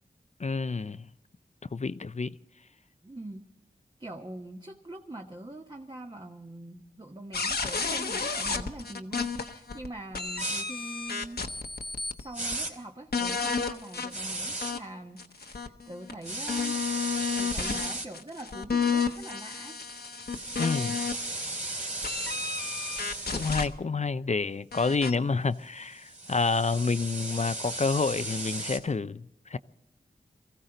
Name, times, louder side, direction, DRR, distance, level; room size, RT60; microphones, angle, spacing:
voice 1, 0.4-1.1 1.7-2.4 20.6-21.0 23.3-29.2 29.5-29.6, left 4 dB, 40° left, 0.5 m, -28 dB
voice 2, 3.0-3.5 4.0-11.5 11.8-19.8, right 1 dB, 25° right, 1.1 m, -43 dB
sound 1, 7.3-9.9 10.1-12.2 12.5-12.6 13.1-14.8 15.2-21.4 22.0-23.7 24.7-25.2, left 5 dB, 65° left, 1.1 m, -32 dB
sound 2, 10.4-10.7 12.3-12.7 14.1-14.7 16.2-18.1 20.1-23.7 25.8-28.8, right 2 dB, 45° right, 2.5 m, -35 dB
23.5 x 15.0 x 3.9 m
wide cardioid pair, 65°, 18 cm